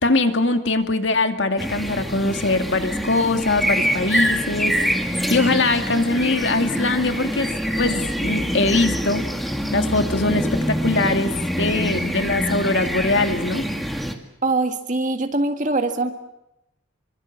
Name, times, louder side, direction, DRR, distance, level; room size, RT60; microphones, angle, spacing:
voice 1, 0.0-7.5 7.8-9.3 9.7-11.3 11.6-13.6, left 2 dB, 60° left, 7 dB, 2.3 m, -22 dB
sound 1, 1.6-14.1, equal, ahead, 2.0 m, -25 dB
voice 2, 14.4-16.1, right 2 dB, 40° right, 6 dB, 1.8 m, -22 dB
27.5 x 24.5 x 7.5 m, 0.87 s
head